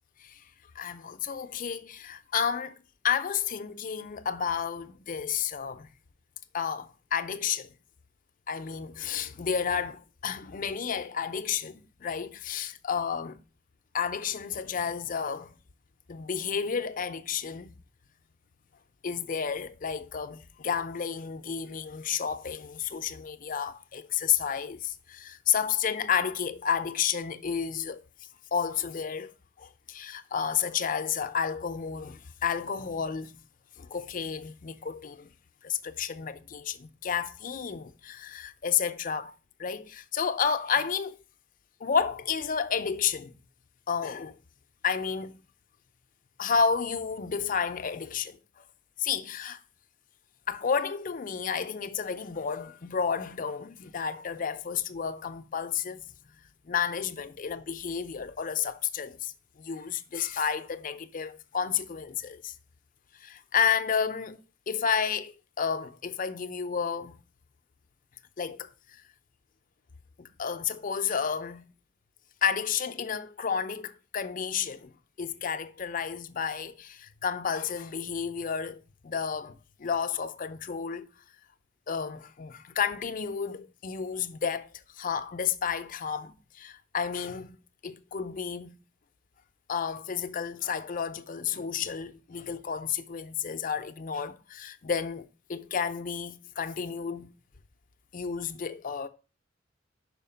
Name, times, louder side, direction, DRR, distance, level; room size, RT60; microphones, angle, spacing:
voice 1, 0.8-5.9 6.5-7.7 8.5-13.4 13.9-15.5 16.1-17.7 19.0-28.0 28.5-29.3 29.6-33.4 33.8-35.3 35.6-39.3 39.6-41.2 41.8-43.3 43.9-44.3 44.8-45.4 46.4-48.6 49.0-49.6 50.5-56.0 56.6-62.5 63.2-64.4 64.7-67.2 68.4-69.0 70.2-71.6 72.4-74.9 75.2-81.1 81.9-87.5 87.8-88.8 89.7-97.3 98.1-99.1, left 7 dB, 45° left, 0.5 m, -31 dB
5.7 x 4.5 x 5.6 m
head